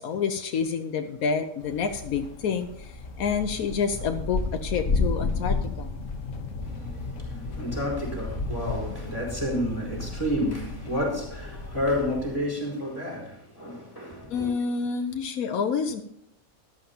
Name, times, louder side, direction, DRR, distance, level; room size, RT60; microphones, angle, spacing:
voice 1, 0.0-5.9 14.3-16.0, left 6 dB, 80° left, 1.2 m, -28 dB
sound 1, 1.6-12.4, left 3 dB, 65° left, 1.5 m, -32 dB
voice 2, 6.6-14.5, equal, 15° left, 4.0 m, -30 dB
13.5 x 11.5 x 2.8 m
omnidirectional pair, 1.5 m